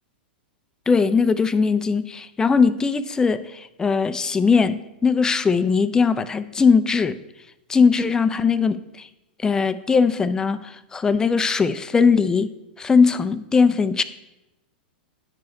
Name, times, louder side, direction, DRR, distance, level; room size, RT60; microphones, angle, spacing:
voice 1, 0.9-7.2 7.7-9.1 9.4-12.5 12.8-14.0, left 5 dB, 10° left, 13 dB, 0.4 m, -20 dB
9.5 x 4.8 x 5.2 m, 0.94 s
hypercardioid pair, 125°, 5 cm